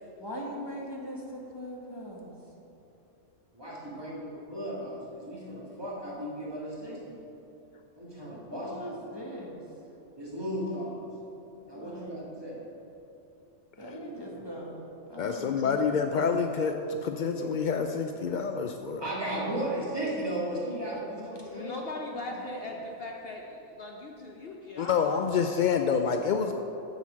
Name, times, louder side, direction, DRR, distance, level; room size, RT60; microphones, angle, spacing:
voice 1, 0.2-2.3 8.5-9.6 11.7-12.3 13.8-14.8 15.1-15.8, equal, 20° left, -2 dB, 1.4 m, -40 dB
voice 2, 3.5-7.2 8.0-9.1 10.2-11.1 11.7-12.6 13.8-14.4 17.4-17.5 18.2-18.3 19.0-21.8 22.1-22.6, right 1 dB, 20° right, -6 dB, 2.1 m, -36 dB
voice 3, 15.2-19.0 24.8-26.5, left 6 dB, 75° left, 5 dB, 0.4 m, -27 dB
voice 4, 21.5-25.3, left 2 dB, 55° left, 0 dB, 0.9 m, -39 dB
7.8 x 7.5 x 6.2 m, 2.9 s
omnidirectional pair, 1.3 m